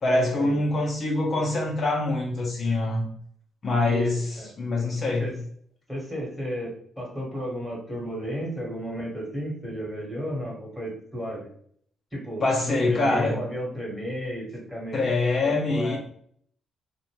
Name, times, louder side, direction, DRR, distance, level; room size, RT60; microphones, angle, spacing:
voice 1, 0.0-3.1 3.6-4.2 4.6-5.3 12.4-13.4 14.9-16.0, left 2 dB, 45° left, -3 dB, 0.6 m, -24 dB
voice 2, 3.8-4.5 5.2-5.3 5.9-11.5 12.1-15.0 15.4-16.0, equal, ahead, -3 dB, 1.2 m, -33 dB
2.5 x 2.1 x 2.9 m, 0.63 s
cardioid pair, 90°, 0 cm